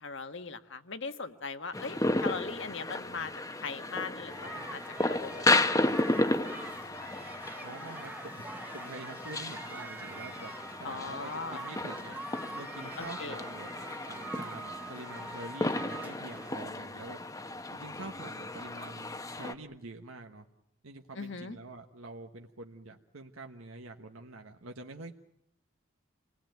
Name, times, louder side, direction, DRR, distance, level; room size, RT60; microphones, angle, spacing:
voice 1, 0.0-3.3 3.6-4.8 5.1-6.6 10.8-11.6 13.0-13.3 21.2-21.6, left 4 dB, 60° left, 9 dB, 1.5 m, -40 dB
sound 1, 1.7-19.5, left 2 dB, 15° left, 0.9 m, -33 dB
sound 2, 4.3-16.6, right 2 dB, 10° right, 1.2 m, -44 dB
voice 2, 7.6-8.4 8.7-12.2 12.5-13.7 14.0-17.2 17.7-20.5 20.8-25.1, right 2 dB, 75° right, 4 dB, 1.3 m, -46 dB
28.0 x 19.5 x 9.3 m, 0.79 s
head